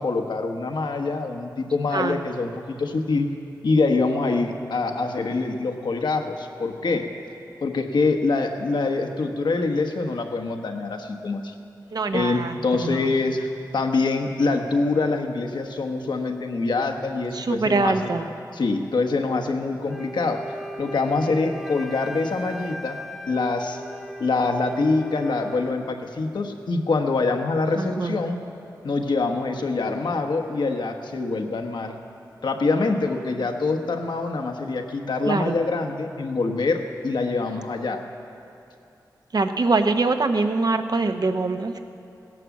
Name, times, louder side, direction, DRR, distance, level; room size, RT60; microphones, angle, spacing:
voice 1, 0.0-3.3 3.6-7.1 7.6-11.5 12.1-18.1 18.5-23.0 23.3-23.8 24.2-28.4 28.8-32.0 32.4-38.0, left 3 dB, 75° left, 4 dB, 1.2 m, -25 dB
voice 2, 11.9-13.1 17.3-18.3 27.8-28.2 35.3-35.5 39.3-41.9, right 3 dB, 60° right, 7 dB, 0.9 m, -24 dB
Wind instrument woodwind instrument, 19.9-25.8, equal, ahead, 1.1 m, -39 dB
16.5 x 11.0 x 7.2 m, 2.7 s
cardioid pair, 50°, 8 cm